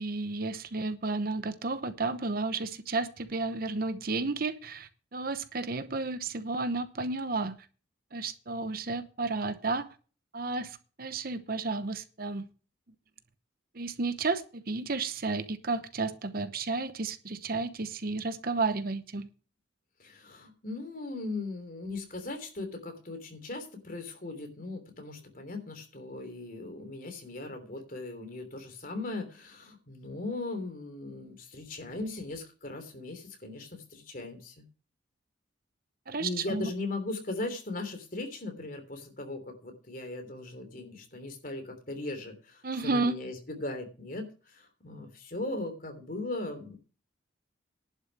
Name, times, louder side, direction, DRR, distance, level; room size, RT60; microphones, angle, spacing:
voice 1, 0.0-7.6 8.1-9.9 10.3-12.5 13.7-19.3 36.1-36.7 42.6-43.2, right 3 dB, 50° right, 0.9 m, -32 dB
voice 2, 20.0-34.7 36.2-46.8, left 2 dB, 45° left, 3.2 m, -38 dB
11.0 x 6.4 x 8.2 m
head